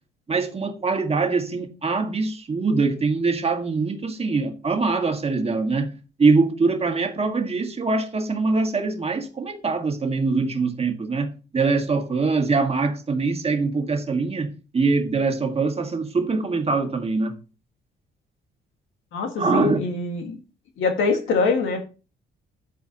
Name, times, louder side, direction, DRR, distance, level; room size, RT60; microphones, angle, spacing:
voice 1, 0.3-5.9 6.2-11.3 11.5-17.3 19.4-19.8, right 4 dB, 30° right, 1.6 m, -23 dB
voice 2, 19.1-20.4 20.8-21.8, left 4 dB, 80° left, 1.8 m, -23 dB
9.2 x 8.1 x 2.9 m
cardioid pair, 90°, 20 cm